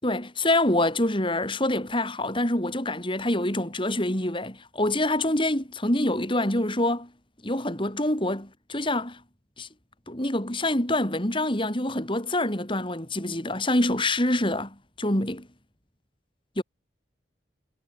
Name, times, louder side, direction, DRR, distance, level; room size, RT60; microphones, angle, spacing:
voice 1, 0.0-7.1 7.4-9.2 9.6-9.7 10.1-15.5 16.6-16.7, left 1 dB, 25° left, 4.8 m, -26 dB
head